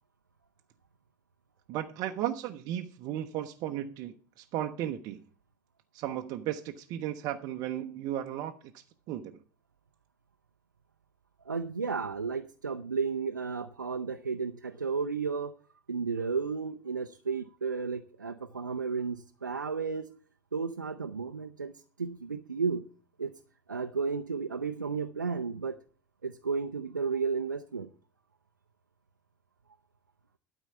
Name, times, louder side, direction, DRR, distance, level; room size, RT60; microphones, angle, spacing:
voice 1, 1.7-5.2 5.9-9.4, right 11 dB, 45° right, 0.7 m, -35 dB
voice 2, 11.5-15.5 15.9-20.1 20.5-21.7 22.0-22.8 23.2-23.3 23.7-25.8 26.2-27.9, right 5 dB, 85° right, 0.5 m, -33 dB
12.0 x 4.5 x 8.1 m
figure-of-eight pair, 75°, 10 cm